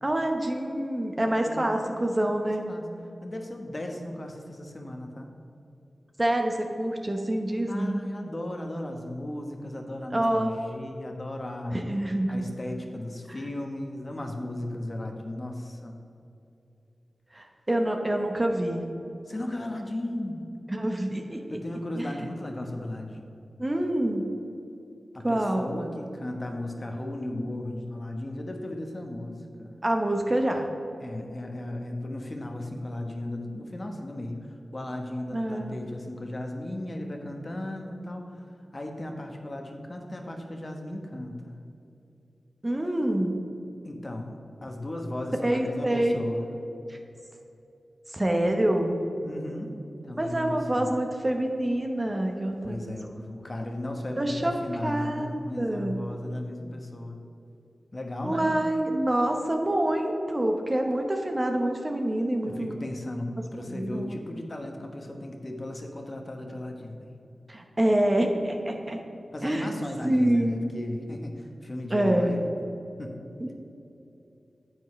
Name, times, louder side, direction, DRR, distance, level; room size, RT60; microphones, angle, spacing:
voice 1, 0.0-2.6 6.2-8.0 10.1-10.6 11.7-12.5 17.3-18.8 20.7-21.4 22.0-22.3 23.6-24.3 25.2-25.7 29.8-30.7 35.3-35.8 42.6-43.4 45.4-46.2 46.9-47.0 48.1-49.0 50.2-52.9 54.2-54.6 54.8-56.0 58.2-62.8 63.7-64.4 67.5-69.0 69.4-69.7 70.0-70.6 71.9-72.4 73.4-73.5, right 1 dB, 30° right, 3 dB, 1.0 m, -26 dB
voice 2, 3.2-5.3 7.7-11.8 12.3-16.0 19.3-20.5 21.5-23.2 25.1-29.8 31.0-38.4 38.7-41.6 43.8-46.5 49.2-51.0 52.6-57.2 57.9-58.6 62.4-67.1 69.3-72.5 73.0-73.1, left 1 dB, 40° left, 3 dB, 1.0 m, -35 dB
9.2 x 7.9 x 3.2 m, 2.8 s
cardioid pair, 50°, 0 cm